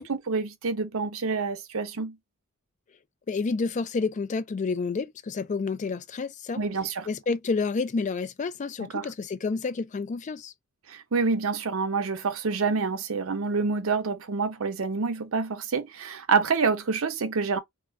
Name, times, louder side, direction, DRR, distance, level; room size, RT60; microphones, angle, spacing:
voice 1, 0.0-2.1 6.6-7.1 8.9-9.1 10.9-17.6, right 4 dB, 75° right, 0.6 m, -27 dB
voice 2, 3.3-6.6 7.1-10.5, left 4 dB, 35° left, 0.3 m, -29 dB
2.3 x 2.3 x 3.3 m
head